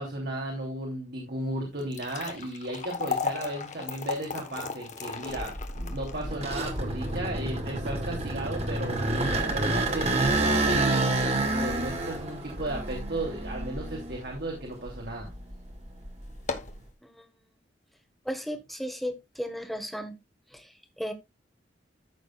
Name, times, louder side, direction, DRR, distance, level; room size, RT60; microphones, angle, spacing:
voice 1, 0.0-9.0 9.5-15.3, right 1 dB, 60° right, -1 dB, 3.0 m, -35 dB
sound 1, 1.7-14.0 14.4-14.5 15.2-15.4 15.7-15.8 16.3-16.8, left 5 dB, 40° left, 1.3 m, -38 dB
sound 2, 5.4-14.4 14.9-16.7, right 2 dB, 35° right, 2.1 m, -29 dB
voice 2, 18.2-20.1 20.5-21.1, equal, ahead, 6 dB, 1.5 m, -35 dB
14.0 x 6.6 x 2.4 m, 0.21 s
head